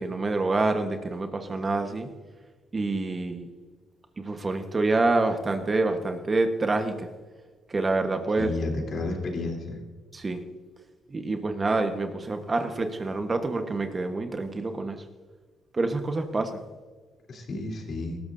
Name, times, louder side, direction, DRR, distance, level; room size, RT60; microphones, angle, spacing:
voice 1, 0.0-2.1 2.7-3.5 4.2-7.1 7.7-8.5 10.1-10.4 11.1-15.0 15.7-16.6, right 3 dB, 30° right, 6 dB, 1.3 m, -27 dB
voice 2, 8.4-9.8 17.3-18.2, left 2 dB, 55° left, 1 dB, 3.4 m, -31 dB
19.5 x 13.0 x 2.7 m, 1.4 s
cardioid pair, 90°, 0 cm